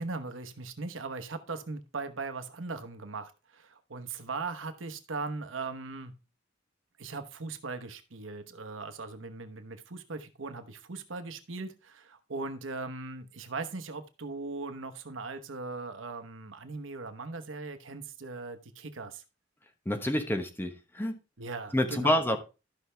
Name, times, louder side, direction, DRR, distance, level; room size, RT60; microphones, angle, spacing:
voice 1, 0.0-6.1 7.0-19.2 21.4-22.4, right 3 dB, 85° right, 9 dB, 1.1 m, -39 dB
voice 2, 19.8-21.2 21.7-22.4, left 1 dB, 10° left, 6 dB, 1.1 m, -28 dB
13.5 x 5.7 x 3.3 m, 0.30 s
head